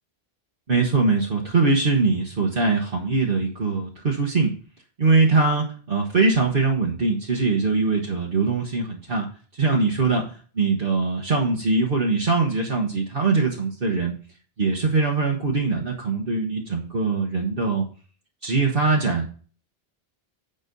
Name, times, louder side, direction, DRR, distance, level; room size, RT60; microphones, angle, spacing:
voice 1, 0.7-4.5 5.0-9.3 9.5-14.1 14.6-17.9 18.4-19.3, right 3 dB, 60° right, -2 dB, 1.5 m, -22 dB
9.0 x 5.3 x 5.3 m, 0.40 s
omnidirectional pair, 1.0 m